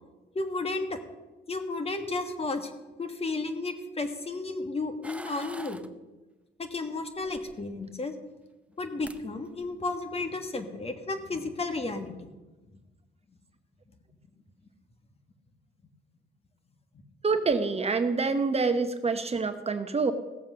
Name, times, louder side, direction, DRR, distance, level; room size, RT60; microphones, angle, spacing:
voice 1, 0.3-1.0 1.5-2.7 3.0-5.8 6.6-8.1 8.8-12.3, left 3 dB, 30° left, 7 dB, 1.5 m, -33 dB
sound 1, 5.0-5.9 7.2-7.9 8.7-8.8 9.0-9.2 9.6-10.0, right 1 dB, 5° right, 0.6 m, -44 dB
voice 2, 17.2-20.1, right 4 dB, 30° right, 8 dB, 0.9 m, -26 dB
16.5 x 7.3 x 6.2 m, 1.2 s
cardioid pair, 90°, 20 cm